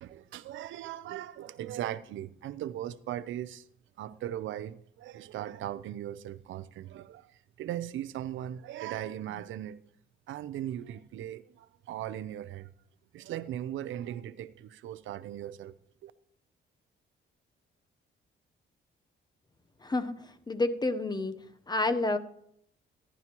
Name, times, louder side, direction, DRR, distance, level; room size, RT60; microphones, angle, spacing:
voice 1, 0.0-3.7 4.0-9.8 10.3-12.7 13.1-15.7 16.0-16.1, right 12 dB, 75° right, 0.6 m, -38 dB
voice 2, 19.8-20.1 20.5-21.3 21.7-22.2, left 2 dB, 20° left, 0.8 m, -29 dB
15.0 x 11.0 x 3.0 m
cardioid pair, 90°, 20 cm